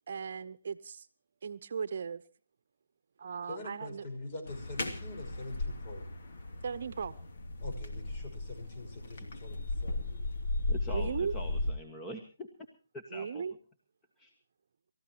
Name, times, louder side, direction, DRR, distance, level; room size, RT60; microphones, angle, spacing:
voice 1, 0.1-1.1 1.4-2.2 3.2-4.1 6.6-7.1 10.9-11.3 13.1-13.5, right 6 dB, 55° right, 0.9 m, -37 dB
voice 2, 3.5-6.0 7.6-10.1, left 2 dB, 40° left, 5.9 m, -44 dB
sound 1, 4.5-11.7, left 2 dB, 55° left, 2.8 m, -36 dB
voice 3, 10.7-12.5 12.9-13.4 14.2-14.3, left 1 dB, 15° left, 1.6 m, -44 dB
29.0 x 14.5 x 3.0 m
figure-of-eight pair, 155°, 0 cm